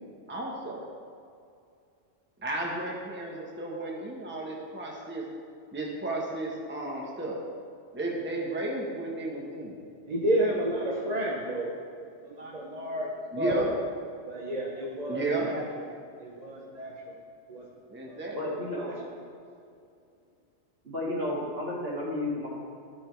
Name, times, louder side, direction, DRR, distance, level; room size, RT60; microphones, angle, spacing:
voice 1, 0.3-0.8 2.4-5.2 5.7-7.4 7.9-9.8 13.3-13.7 15.1-15.5 17.9-18.5, right 2 dB, 10° right, -2 dB, 1.0 m, -33 dB
voice 2, 10.1-11.7 12.0-13.1 13.4-13.7 14.3-15.6 16.2-17.1 17.5-17.6 18.0-18.2 18.8-18.9, right 1 dB, 40° right, -3 dB, 0.9 m, -31 dB
voice 3, 18.3-18.9 20.8-22.5, left 1 dB, 55° right, -6 dB, 2.4 m, -32 dB
13.0 x 5.3 x 4.5 m, 2.4 s
omnidirectional pair, 1.2 m